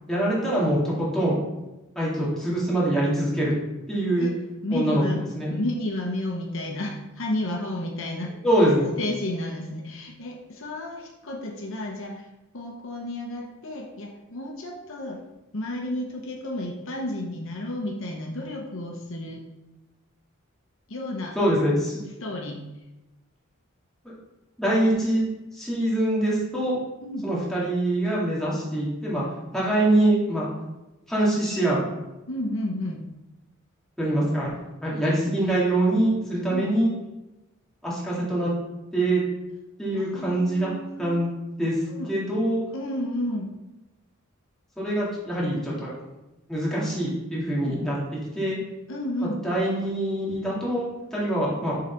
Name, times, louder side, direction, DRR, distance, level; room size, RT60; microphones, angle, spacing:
voice 1, 0.1-1.4 2.0-3.5 3.9-4.3 4.7-5.0 5.3-5.5 8.4-8.9 21.4-22.0 24.0-24.1 24.6-25.2 25.5-26.8 27.2-29.2 29.5-30.5 31.1-31.8 34.0-34.5 34.8-36.9 37.8-38.5 38.9-39.2 39.8-40.7 41.0-41.3 41.6-41.8 42.1-42.6 44.8-45.9 46.5-48.0 48.3-48.6 49.4-51.8, right 1 dB, ahead, -7 dB, 2.1 m, -24 dB
voice 2, 3.9-4.3 4.6-8.3 9.0-12.2 12.5-15.2 15.5-19.4 20.9-21.4 22.2-22.6 27.0-27.2 32.3-33.0 36.5-36.7 39.9-41.2 41.9-42.1 42.7-43.5 47.6-47.8 48.9-49.4, left 1 dB, 65° left, 0 dB, 0.9 m, -32 dB
6.5 x 3.9 x 4.5 m, 0.99 s
head